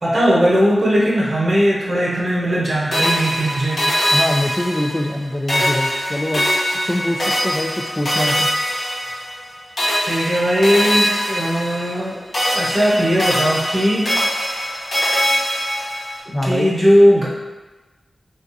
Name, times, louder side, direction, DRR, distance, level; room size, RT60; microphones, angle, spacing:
voice 1, 0.0-3.9 10.0-12.2 12.5-14.2 16.3-17.3, equal, 55° right, -6 dB, 0.9 m, -18 dB
sound 1, 2.9-5.2 5.5-9.5 9.8-12.1 12.3-16.2, equal, 65° left, 0.9 m, -22 dB
voice 2, 4.1-6.5 6.8-8.5 16.3-16.7, left 1 dB, 15° left, 3 dB, 0.3 m, -23 dB
3.5 x 2.4 x 2.6 m, 1.2 s
wide cardioid pair, 70°, 0 cm